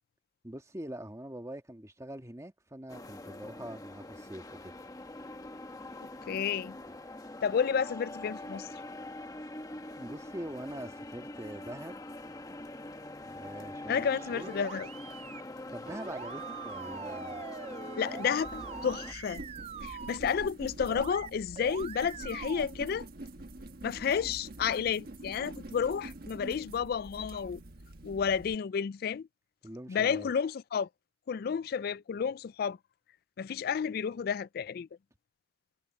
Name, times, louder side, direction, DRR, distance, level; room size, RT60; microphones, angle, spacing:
voice 1, 0.4-4.7 10.0-12.0 13.2-14.5 15.7-17.4 29.6-30.3, right 1 dB, 15° right, 1.6 m, -43 dB
sound 1, 2.9-19.1, left 2 dB, 20° left, 1.2 m, -44 dB
voice 2, 6.3-6.8 7.4-8.7 13.9-14.9 18.0-19.4 19.8-23.0 23.8-27.6 28.0-29.3 29.9-30.9 31.3-32.8 33.4-34.9, left 7 dB, 55° left, 0.3 m, -31 dB
sound 2, 14.0-15.4 15.9-20.2 20.9-21.3 21.6-22.6, right 6 dB, 35° right, 0.3 m, -43 dB
sound 3, 18.4-28.5, right 1 dB, 55° right, 1.5 m, -46 dB
head